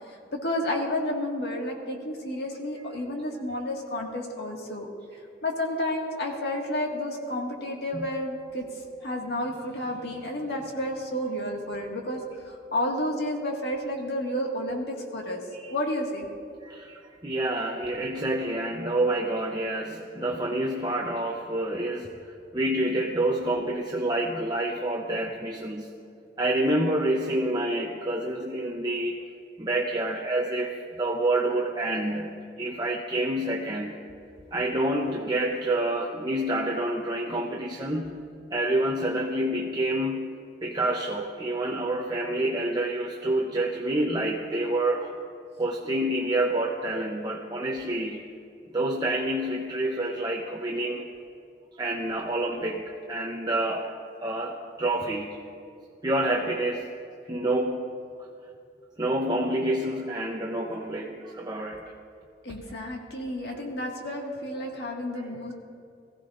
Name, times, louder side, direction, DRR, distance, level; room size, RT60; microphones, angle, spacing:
voice 1, 0.3-4.9 5.4-8.7 9.0-12.2 12.4-15.4 15.7-16.3 62.4-65.5, left 1 dB, 70° left, 0 dB, 1.8 m, -31 dB
voice 2, 16.6-22.1 22.5-25.9 26.4-29.2 29.6-32.3 32.6-34.0 34.5-38.1 38.5-45.1 45.6-48.2 48.7-51.1 51.8-53.9 54.2-55.4 56.0-56.9 57.3-57.9 59.0-61.8 65.2-65.5, right 1 dB, 25° right, -1 dB, 0.7 m, -28 dB
21.0 x 15.0 x 2.5 m, 2.5 s
head